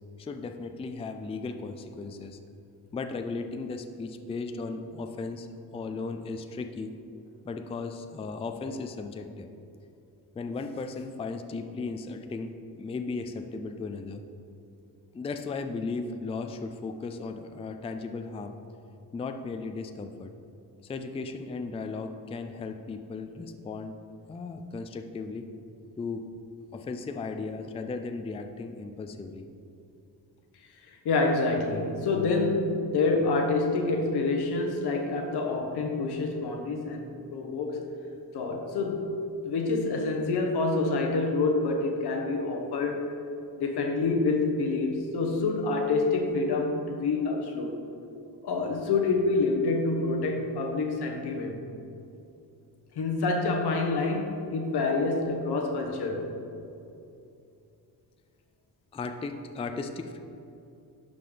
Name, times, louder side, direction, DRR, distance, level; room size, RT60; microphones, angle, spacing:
voice 1, 0.2-2.4 2.9-5.5 5.7-6.9 7.4-9.5 10.3-14.2 15.1-18.5 19.1-20.3 20.8-23.9 24.3-25.5 26.0-26.2 26.7-29.5 58.9-60.2, left 4 dB, 15° left, 7 dB, 0.3 m, -36 dB
voice 2, 31.0-37.9 38.3-39.2 39.4-43.0 43.6-47.8 48.4-51.6 52.9-56.3, left 3 dB, 85° left, 3 dB, 1.2 m, -27 dB
11.5 x 5.2 x 3.9 m, 2.7 s
wide cardioid pair, 135°, 38 cm